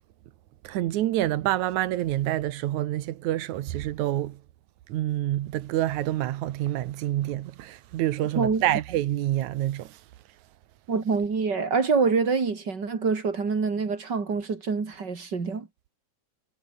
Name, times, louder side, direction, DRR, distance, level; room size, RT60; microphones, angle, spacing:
voice 1, 0.6-4.4 4.9-10.0, right 14 dB, 90° right, 2.4 m, -27 dB
voice 2, 10.9-15.7, right 5 dB, 35° right, 3.6 m, -26 dB
omnidirectional pair, 3.3 m